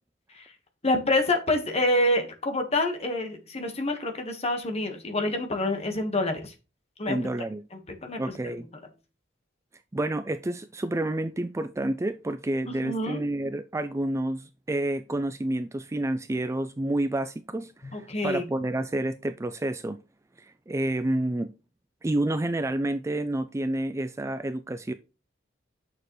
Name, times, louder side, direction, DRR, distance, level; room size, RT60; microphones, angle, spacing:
voice 1, 0.8-6.5 7.0-7.2 7.9-8.5 12.7-13.2 17.9-18.4, left 1 dB, 35° left, 1.5 m, -27 dB
voice 2, 7.1-7.6 8.2-8.7 9.9-20.0 20.4-21.5 22.0-24.9, right 1 dB, 15° right, 0.4 m, -29 dB
8.6 x 6.8 x 3.2 m
head